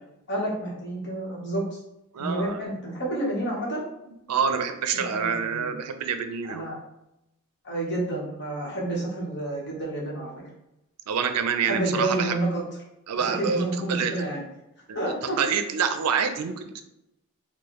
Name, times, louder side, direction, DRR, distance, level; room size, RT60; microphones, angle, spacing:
voice 1, 0.3-1.8 2.2-3.8 4.9-5.7 6.4-6.8 7.6-10.3 11.6-12.6 13.2-14.4 14.9-15.4, right 1 dB, 50° left, -2 dB, 1.1 m, -29 dB
voice 2, 2.1-2.6 4.3-6.6 11.1-12.3 13.1-14.1 14.9-16.8, right 6 dB, 90° right, 8 dB, 0.4 m, -27 dB
4.6 x 2.1 x 3.0 m, 0.86 s
head